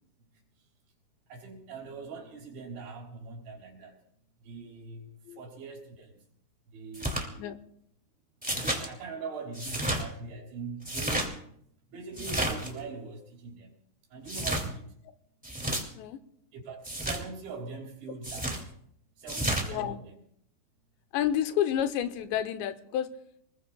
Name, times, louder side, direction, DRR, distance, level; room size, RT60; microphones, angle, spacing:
voice 1, 1.3-4.0 4.4-5.0 5.4-6.1 6.7-7.4 8.5-11.3 11.9-13.7 14.1-14.9 16.5-18.7 19.2-20.1, right 4 dB, 90° right, 1 dB, 5.8 m, -42 dB
sound 1, 6.9-7.2 8.4-8.8 9.5-10.0 10.8-11.3 12.1-12.7 14.2-14.7 15.4-15.8 16.8-17.2 18.2-18.6 19.3-19.7, right 1 dB, 10° right, 0.5 m, -31 dB
voice 2, 19.6-20.0 21.1-23.1, left 10 dB, 85° left, 9 dB, 3.0 m, -30 dB
25.5 x 20.5 x 2.3 m, 0.70 s
omnidirectional pair, 5.0 m